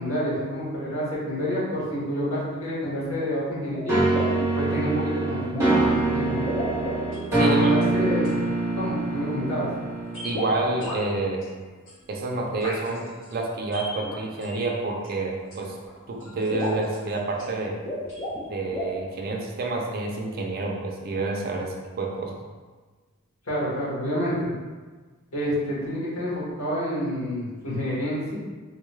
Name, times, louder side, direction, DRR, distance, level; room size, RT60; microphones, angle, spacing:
voice 1, 0.0-4.0 4.5-6.3 7.3-8.4 8.8-9.7 23.5-24.5 25.3-28.4, equal, 90° left, -8 dB, 1.5 m, -28 dB
sound 1, 3.7-3.8 4.1-4.5 5.5-5.7 6.3-7.2 7.9-8.3 10.2-11.0 12.6-12.8 14.0-14.2 15.4-15.5 15.8-15.9 16.2-16.3 16.5-16.9 17.7-18.4 18.7-19.0, left 1 dB, 20° left, 0.7 m, -32 dB
sound 2, 3.9-10.7, right 2 dB, 10° right, 0.9 m, -25 dB
sound 3, 7.1-8.7 10.1-15.8 16.2-17.8 18.1-18.5, left 1 dB, 60° left, 1.3 m, -44 dB
voice 2, 7.3-7.7 10.2-11.4 12.1-15.7 16.1-17.8 18.5-22.4, right 2 dB, 45° right, 0 dB, 0.5 m, -29 dB
3.8 x 2.2 x 3.1 m, 1.4 s
head